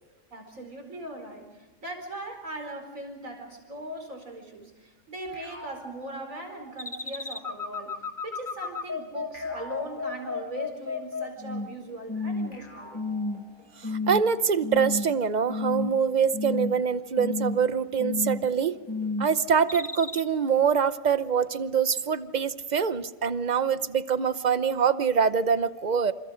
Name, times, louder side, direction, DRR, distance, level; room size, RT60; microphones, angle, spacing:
voice 1, 0.3-8.0 8.2-13.0, right 1 dB, 80° right, 4 dB, 5.0 m, -39 dB
sound 1, 5.3-7.0 9.3-10.9 12.5-14.0, equal, 40° left, 4.9 m, -49 dB
sound 2, 6.8-11.8 12.1-12.6 12.9-13.5 13.8-14.2 14.6-15.2 15.5-16.0 16.3-16.8 17.2-17.6 18.0-18.5 18.9-19.3 19.7-20.2, left 3 dB, 15° left, 1.2 m, -31 dB
sound 3, 10.0-25.4, equal, 5° right, 4.0 m, -57 dB
voice 2, 13.8-18.7 19.2-26.1, right 6 dB, 40° right, 13 dB, 0.8 m, -24 dB
28.5 x 27.5 x 5.1 m, 1.2 s
omnidirectional pair, 1.4 m